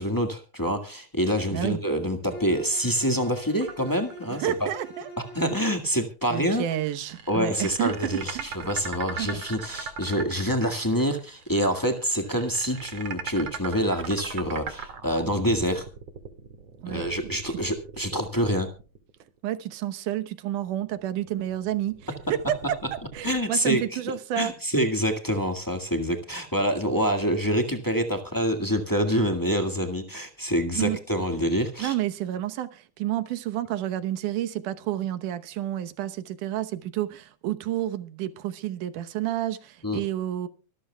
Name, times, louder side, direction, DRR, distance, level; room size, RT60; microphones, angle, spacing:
voice 1, 0.0-4.7 5.3-6.6 7.3-15.8 16.9-18.7 23.2-24.0 24.3-31.9 39.8-40.0, equal, 25° left, 0.4 m, -26 dB
Bowed string instrument, 2.3-5.8, right 2 dB, 80° left, 6.8 m, -43 dB
sound 1, 3.6-4.7 5.1-5.2 6.4-19.4 20.6-23.4, right 6 dB, 50° right, 3.1 m, -40 dB
voice 2, 4.3-5.1 6.3-8.5 9.1-9.4 16.8-17.1 19.4-24.5 30.7-31.0 31.8-40.5, right 12 dB, 75° right, 2.5 m, -30 dB
25.0 x 13.5 x 2.3 m
omnidirectional pair, 3.8 m